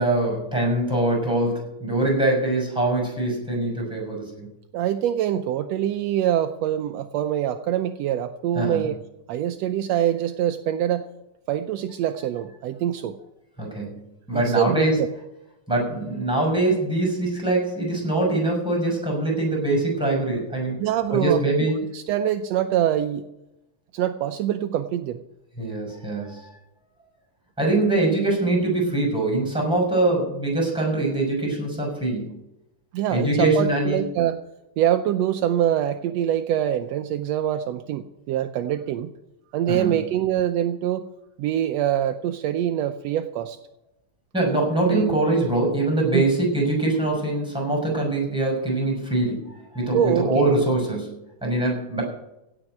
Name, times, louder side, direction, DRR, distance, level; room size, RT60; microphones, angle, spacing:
voice 1, 0.0-4.5 8.6-8.8 13.6-13.9 14.3-14.9 15.7-20.8 21.1-21.7 25.6-26.5 27.6-32.3 33.1-34.0 39.7-39.9 44.3-51.1 51.4-52.0, right 2 dB, ahead, 1 dB, 5.4 m, -23 dB
voice 2, 4.7-9.0 9.3-11.1 11.5-13.2 14.3-15.1 20.8-23.3 23.9-25.2 32.9-34.4 34.8-39.1 39.5-41.0 41.4-43.6 44.8-45.2 46.1-46.3 49.9-50.5, right 11 dB, 80° right, 8 dB, 1.5 m, -24 dB
16.5 x 6.2 x 9.0 m, 0.88 s
omnidirectional pair, 3.6 m